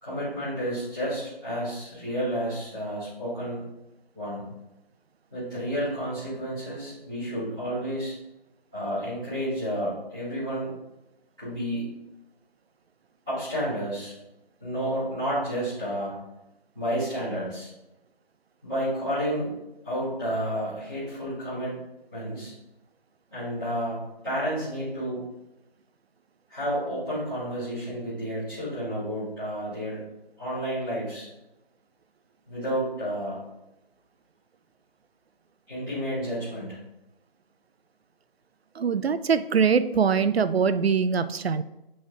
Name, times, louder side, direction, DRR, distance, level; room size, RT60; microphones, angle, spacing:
voice 1, 0.0-3.6 4.1-4.4 5.3-8.2 8.7-10.7 11.4-11.9 13.3-14.1 14.6-16.1 16.7-17.7 18.6-19.5 19.8-21.8 22.1-22.5 23.3-25.2 26.5-30.0 30.4-31.3 32.5-33.4 35.7-36.8, equal, 5° right, -19 dB, 1.3 m, -31 dB
voice 2, 38.8-41.6, right 6 dB, 85° right, 13 dB, 0.5 m, -23 dB
7.7 x 3.4 x 3.5 m, 0.92 s
figure-of-eight pair, 170°, 30 cm